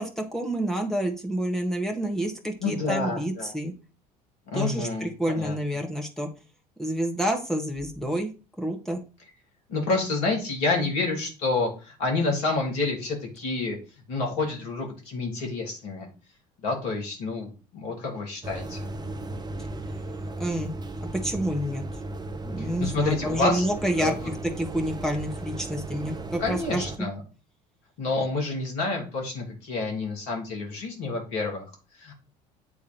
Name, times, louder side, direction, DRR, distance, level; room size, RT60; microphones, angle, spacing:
voice 1, 0.0-3.7 4.5-6.3 6.8-8.3 8.6-9.0 19.6-19.7 20.4-20.7 21.0-21.8 22.4-24.1 24.6-26.8, right 1 dB, ahead, 1 dB, 1.7 m, -28 dB
voice 2, 2.6-3.5 4.5-5.5 9.7-13.8 14.1-16.1 16.6-18.9 22.6-23.7 24.0-24.3 26.4-27.2 28.0-32.1, left 3 dB, 65° left, 1 dB, 2.7 m, -29 dB
sound 1, 18.4-27.0, right 2 dB, 20° right, 1.0 m, -36 dB
8.4 x 3.5 x 4.5 m, 0.33 s
figure-of-eight pair, 60°, 21 cm